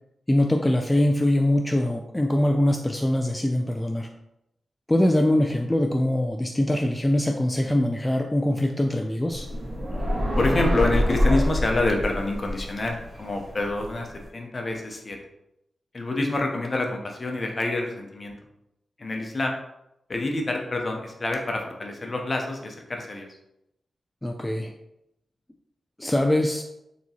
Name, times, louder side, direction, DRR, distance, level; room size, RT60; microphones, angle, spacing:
voice 1, 0.3-4.1 4.9-9.5 24.2-24.7 26.0-26.6, left 1 dB, 15° left, 3 dB, 0.3 m, -23 dB
sound 1, 9.3-14.3, left 1 dB, 40° right, 1.4 m, -26 dB
voice 2, 10.4-15.2 15.9-18.3 19.0-19.6 20.1-23.3, left 2 dB, 45° left, 2 dB, 0.7 m, -27 dB
3.5 x 2.9 x 2.8 m, 0.84 s
cardioid pair, 50°, 0 cm